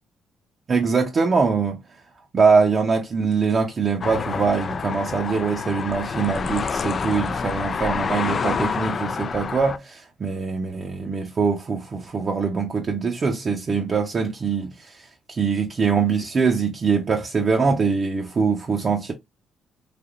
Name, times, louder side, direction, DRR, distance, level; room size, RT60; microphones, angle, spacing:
voice 1, 0.7-1.8 2.3-14.7 15.4-19.1, right 5 dB, 40° right, 0.8 m, -23 dB
sound 1, 4.0-9.8, left 5 dB, 45° left, 0.3 m, -27 dB
3.4 x 2.7 x 2.5 m
cardioid pair, 90°, 0 cm